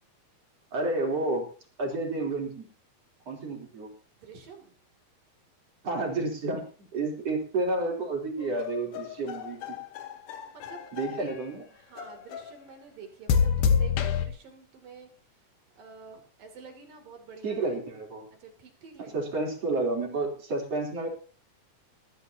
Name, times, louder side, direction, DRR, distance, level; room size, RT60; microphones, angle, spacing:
voice 1, 0.7-1.4 1.8-2.7 3.3-3.9 5.8-9.6 10.9-11.6 17.4-18.3 19.1-21.1, right 2 dB, 45° right, 0 dB, 4.5 m, -30 dB
voice 2, 4.2-4.7 10.5-11.3 11.7-15.1 15.8-17.8 18.4-19.3, right 5 dB, 80° right, 3 dB, 4.6 m, -48 dB
sound 1, 8.4-11.4 12.0-12.6 13.3-14.3, left 6 dB, 75° left, 2.7 m, -28 dB
20.5 x 13.5 x 2.9 m, 0.39 s
omnidirectional pair, 3.9 m